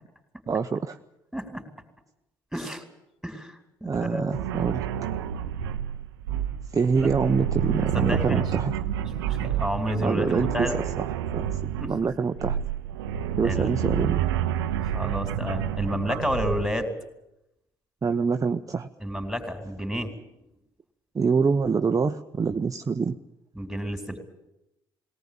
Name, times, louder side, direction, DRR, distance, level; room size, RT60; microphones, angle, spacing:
voice 1, 0.5-1.0 3.8-4.8 6.7-8.7 10.0-11.1 11.3-11.5 11.9-12.6 13.4-14.2 18.0-18.9 21.1-23.2, right 5 dB, 30° right, 6 dB, 0.9 m, -25 dB
voice 2, 1.3-1.6 2.5-2.8 3.2-4.2 7.0-7.1 7.9-8.4 9.1-10.8 11.8-11.9 13.4-13.8 14.9-16.9 19.0-20.2 23.6-24.2, equal, ahead, 6 dB, 4.0 m, -30 dB
sound 1, 4.3-16.8, right 9 dB, 85° right, 0.8 m, -29 dB
20.5 x 18.0 x 8.8 m, 0.86 s
hypercardioid pair, 55°, 12 cm